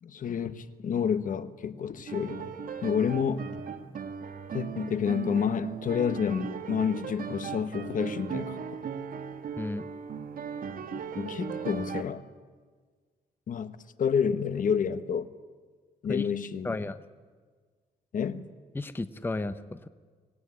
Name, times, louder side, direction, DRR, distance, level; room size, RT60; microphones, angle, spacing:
voice 1, 0.0-2.5 2.8-3.5 4.5-8.7 11.2-12.2 13.5-13.7 14.0-15.3 16.0-16.8 18.1-18.5, left 7 dB, 50° left, 1.3 m, -29 dB
sound 1, 2.1-12.0, right 6 dB, 60° right, 1.8 m, -37 dB
voice 2, 9.6-9.9 16.1-16.3 16.6-17.0 18.7-19.9, left 2 dB, 10° left, 0.8 m, -33 dB
24.5 x 19.0 x 9.7 m
cardioid pair, 110°, 17 cm